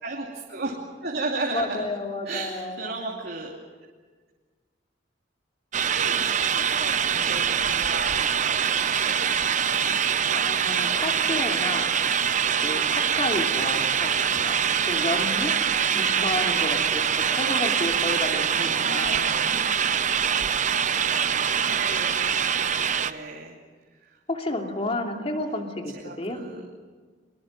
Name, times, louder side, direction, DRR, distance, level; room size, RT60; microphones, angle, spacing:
voice 1, 0.0-0.8 1.0-1.8 2.2-3.5 5.8-9.8 18.4-19.8 21.6-23.5 24.5-25.2 25.9-26.6, right 3 dB, 55° right, -1 dB, 2.8 m, -35 dB
voice 2, 1.5-3.0 7.1-7.4 10.3-12.0 12.5-15.6 15.9-19.3 24.3-26.4, left 2 dB, 35° left, 2 dB, 2.8 m, -31 dB
sound 1, 5.7-23.1, right 8 dB, 40° right, 0.8 m, -24 dB
23.0 x 22.5 x 7.5 m, 1.5 s
head